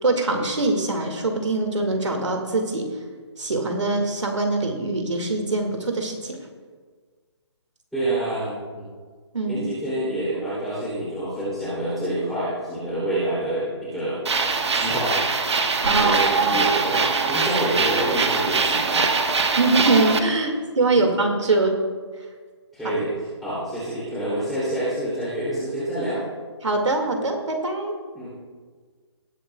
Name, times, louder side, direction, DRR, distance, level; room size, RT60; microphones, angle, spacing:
voice 1, 0.0-2.9 3.4-6.4 9.3-9.7 15.8-16.2 16.5-16.6 19.6-21.8 26.6-27.9, right 2 dB, 90° right, 3 dB, 2.0 m, -23 dB
voice 2, 7.9-8.9 9.5-14.2 14.7-15.2 15.8-19.6 20.9-21.0 22.7-26.2 28.1-28.3, right 1 dB, ahead, -13 dB, 2.8 m, -27 dB
sound 1, 14.3-20.2, right 4 dB, 70° right, 1.2 m, -22 dB
19.5 x 7.6 x 2.3 m, 1.5 s
hypercardioid pair, 160°, 15 cm